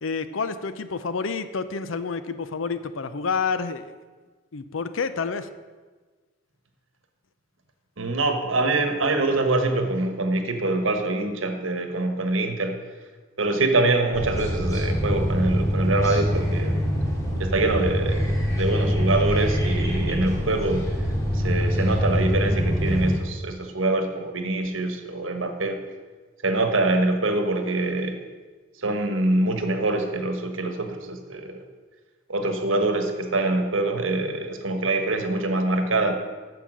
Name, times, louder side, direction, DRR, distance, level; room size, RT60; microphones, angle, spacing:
voice 1, 0.0-3.9 4.5-5.5, left 5 dB, 90° left, 12 dB, 0.6 m, -29 dB
voice 2, 8.0-12.8 13.4-16.8 17.4-20.9 21.3-25.8 26.4-28.2 28.8-31.6 32.3-36.1, right 2 dB, 90° right, 6 dB, 1.3 m, -24 dB
sound 1, 14.1-23.2, equal, 15° left, 1.9 m, -24 dB
9.3 x 7.0 x 6.2 m, 1.4 s
head